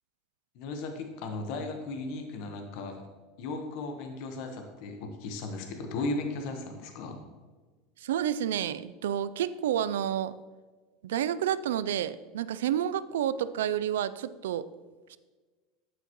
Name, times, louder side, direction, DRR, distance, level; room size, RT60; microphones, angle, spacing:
voice 1, 0.5-3.0 3.4-7.2, left 3 dB, 65° left, 4 dB, 1.1 m, -36 dB
voice 2, 8.0-10.3 11.0-14.7 15.1-15.2, right 10 dB, 90° right, 15 dB, 0.3 m, -30 dB
9.2 x 8.1 x 3.0 m, 1.3 s
supercardioid pair, 105°, 0 cm